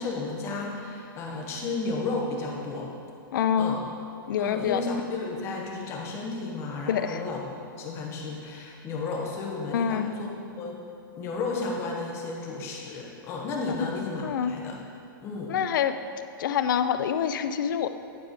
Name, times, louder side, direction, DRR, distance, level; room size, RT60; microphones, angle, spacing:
voice 1, 0.0-2.9 3.6-3.8 4.4-7.4 7.8-10.3 10.6-10.8 11.2-14.8 15.2-15.5, left 3 dB, 20° left, -1 dB, 1.0 m, -33 dB
voice 2, 3.3-3.8 4.3-4.8 6.9-7.2 9.7-10.1 13.7-13.9 14.2-14.6 15.5-16.0 16.4-17.9, left 8 dB, 65° left, 10 dB, 0.4 m, -26 dB
9.7 x 4.6 x 5.0 m, 2.6 s
hypercardioid pair, 160°, 12 cm